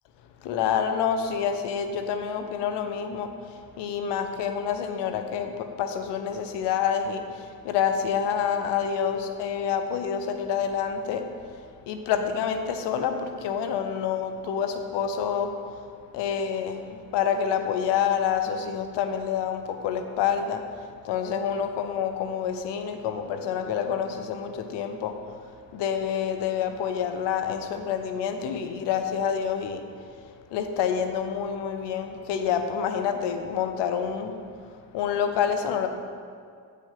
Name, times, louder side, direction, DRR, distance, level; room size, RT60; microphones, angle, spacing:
voice 1, 0.4-11.2 11.9-15.8 16.1-25.4 25.7-29.8 30.5-34.4 34.9-35.9, left 7 dB, 90° left, 7 dB, 0.8 m, -28 dB
8.2 x 5.2 x 5.7 m, 2.1 s
supercardioid pair, 55°, 41 cm